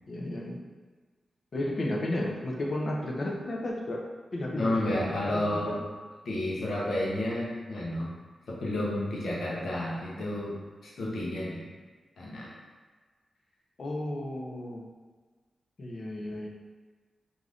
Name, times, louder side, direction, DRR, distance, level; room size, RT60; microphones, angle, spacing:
voice 1, 0.1-0.6 1.5-4.0 4.3-5.8 13.8-14.9 15.8-16.5, left 1 dB, 50° left, -1 dB, 0.5 m, -33 dB
voice 2, 4.5-5.8 6.2-8.1 8.5-10.5 10.8-11.7 12.2-12.5, left 1 dB, 75° left, -5 dB, 0.7 m, -31 dB
2.5 x 2.5 x 3.3 m, 1.4 s
cardioid pair, 80°, 0 cm